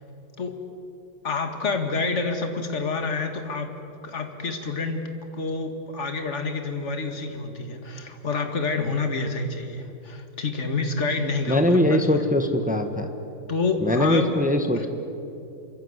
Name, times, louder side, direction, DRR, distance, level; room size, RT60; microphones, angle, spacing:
voice 1, 1.2-3.7 4.0-5.1 5.4-12.2 13.5-14.3 14.7-14.9, left 3 dB, 40° left, 5 dB, 2.3 m, -28 dB
voice 2, 11.5-13.1 13.8-14.9, left 1 dB, 5° right, 6 dB, 1.3 m, -21 dB
27.5 x 24.5 x 8.2 m, 2.8 s
omnidirectional pair, 2.0 m